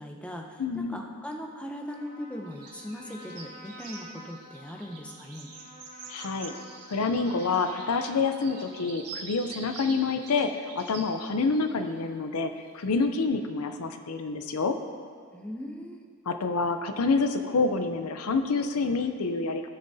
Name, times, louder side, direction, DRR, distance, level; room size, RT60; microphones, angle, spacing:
voice 1, 0.0-5.5 15.3-16.0, equal, 5° left, 1 dB, 0.6 m, -39 dB
voice 2, 0.6-1.0 6.1-6.5 6.9-14.7 16.3-19.6, left 4 dB, 75° left, 7 dB, 0.6 m, -27 dB
Trumpet, 1.8-8.9, left 1 dB, 35° left, 1.2 m, -49 dB
sound 1, 2.5-11.2 11.5-12.0 12.7-12.9, right 4 dB, 85° right, 1.3 m, -46 dB
16.0 x 6.8 x 2.8 m, 2.1 s
head